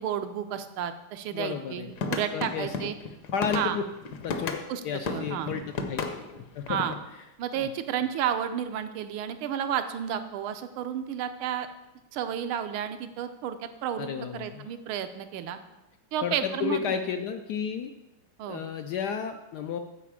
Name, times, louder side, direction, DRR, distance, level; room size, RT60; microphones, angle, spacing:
voice 1, 0.0-3.0 3.5-3.8 4.7-4.8 5.1-5.6 6.7-7.0 7.4-11.7 12.1-15.6 16.1-17.0 18.4-18.6, right 9 dB, 85° right, 9 dB, 1.5 m, -32 dB
voice 2, 1.3-1.9 2.3-2.9 3.3-3.8 4.2-4.6 4.8-5.6 5.9-6.0 6.3-6.8 7.6-7.7 14.0-14.7 16.2-17.9 18.5-19.8, left 7 dB, 75° left, 7 dB, 0.9 m, -32 dB
sound 1, 1.9-4.7 5.1-7.0, left 4 dB, 60° left, 1.3 m, -33 dB
8.3 x 5.0 x 7.3 m, 0.99 s
omnidirectional pair, 2.3 m